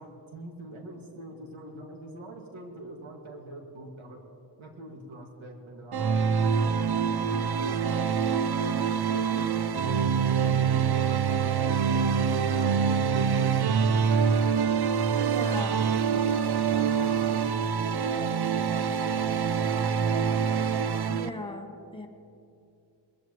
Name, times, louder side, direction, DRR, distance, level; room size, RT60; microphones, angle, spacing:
voice 1, 0.0-4.2 4.6-8.5 8.9-14.7 16.6-18.7 19.0-20.3, right 1 dB, 85° right, 1 dB, 2.2 m, -45 dB
sound 1, 5.9-21.3, right 6 dB, 55° right, 0.6 m, -25 dB
voice 2, 15.2-16.4 21.1-22.1, left 2 dB, 10° left, 3 dB, 1.1 m, -39 dB
21.0 x 15.0 x 3.1 m, 2.5 s
wide cardioid pair, 120°, 46 cm